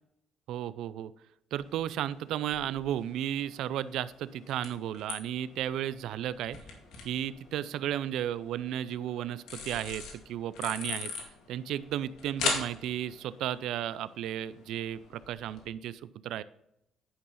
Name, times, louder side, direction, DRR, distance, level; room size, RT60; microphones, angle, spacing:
voice 1, 0.5-1.1 1.5-6.6 7.0-11.1 11.5-16.4, right 11 dB, 75° right, 17 dB, 0.4 m, -34 dB
sound 1, 1.6-15.7, left 4 dB, 80° left, 2.1 m, -42 dB
10.0 x 5.6 x 4.1 m, 0.82 s
cardioid pair, 110°, 0 cm